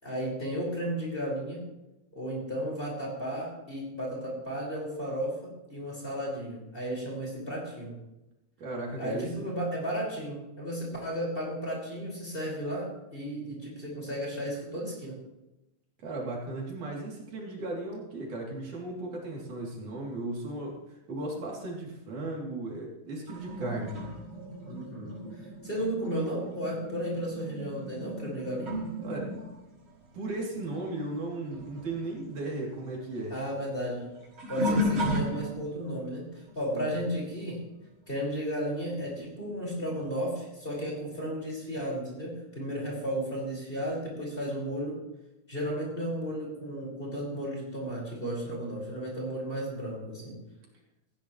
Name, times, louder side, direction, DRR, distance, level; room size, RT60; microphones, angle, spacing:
voice 1, 0.0-1.6 2.1-7.9 9.0-15.2 23.6-24.0 24.6-25.2 25.6-28.7 33.3-34.0 34.5-37.6 38.1-45.0 45.5-50.3, equal, 15° left, -3 dB, 5.8 m, -34 dB
voice 2, 8.6-9.3 16.0-23.9 29.0-29.3 30.1-33.4 36.7-36.9, right 2 dB, 75° right, -3 dB, 4.7 m, -36 dB
sound 1, 23.3-31.3 31.5-35.9 36.5-36.8 39.1-39.2 40.0-40.1, left 1 dB, 50° right, 6.1 m, -35 dB
19.0 x 15.5 x 3.3 m, 0.97 s
omnidirectional pair, 3.5 m